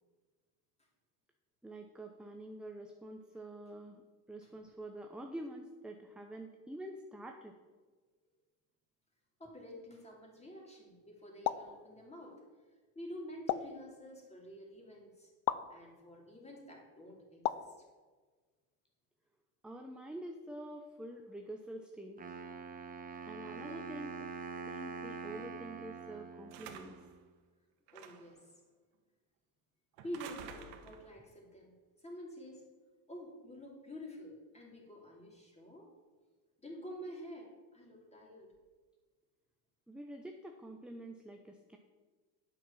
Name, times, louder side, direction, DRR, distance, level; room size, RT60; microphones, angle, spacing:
voice 1, 1.6-7.6 19.6-22.4 23.3-24.2 24.7-27.1 39.9-41.8, right 1 dB, ahead, 3 dB, 0.7 m, -47 dB
voice 2, 9.4-12.4 12.9-15.3 15.7-17.9 23.4-23.8 27.9-28.6 30.0-32.7 33.1-35.9 36.6-38.5, equal, 15° left, -1 dB, 3.2 m, -49 dB
sound 1, 11.4-11.8 13.5-13.8 15.5-15.7 17.4-17.8, left 13 dB, 50° left, 0.6 m, -34 dB
Wind instrument woodwind instrument, 22.2-27.1, right 5 dB, 20° right, 1.2 m, -45 dB
sound 2, 26.5-27.1 27.9-28.4 30.0-31.1, right 7 dB, 70° right, 1.4 m, -50 dB
9.1 x 6.0 x 7.3 m, 1.4 s
supercardioid pair, 105°, 44 cm